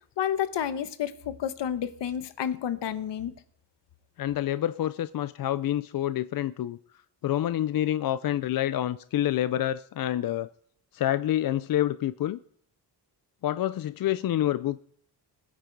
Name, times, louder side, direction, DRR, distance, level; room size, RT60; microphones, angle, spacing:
voice 1, 0.2-3.3, left 9 dB, 75° left, 1.1 m, -30 dB
voice 2, 4.2-6.8 7.2-10.5 10.9-12.4 13.4-14.8, left 12 dB, 55° left, 0.5 m, -27 dB
21.5 x 9.6 x 4.6 m
wide cardioid pair, 180°, 42 cm